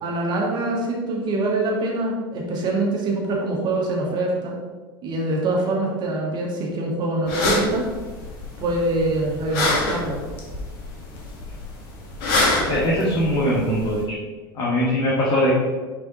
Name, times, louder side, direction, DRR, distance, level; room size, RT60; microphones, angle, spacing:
voice 1, 0.0-4.6 5.0-7.9 8.6-10.2, right 2 dB, 35° right, -1 dB, 1.9 m, -24 dB
sound 1, 7.3-14.0, left 2 dB, 50° left, 1.9 m, -27 dB
voice 2, 12.6-14.2 14.5-15.5, equal, 35° left, -6 dB, 1.9 m, -21 dB
6.4 x 4.8 x 5.0 m, 1.3 s
figure-of-eight pair, 80°, 12 cm